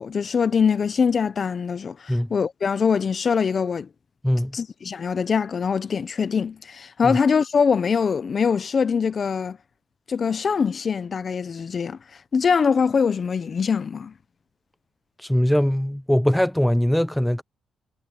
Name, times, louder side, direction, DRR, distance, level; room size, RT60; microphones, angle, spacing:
voice 1, 0.0-3.9 4.5-9.6 10.1-12.0 12.3-14.1, left 6 dB, 40° left, 0.7 m, -23 dB
voice 2, 15.2-17.4, equal, 5° left, 0.4 m, -21 dB
cardioid pair, 120°, 0 cm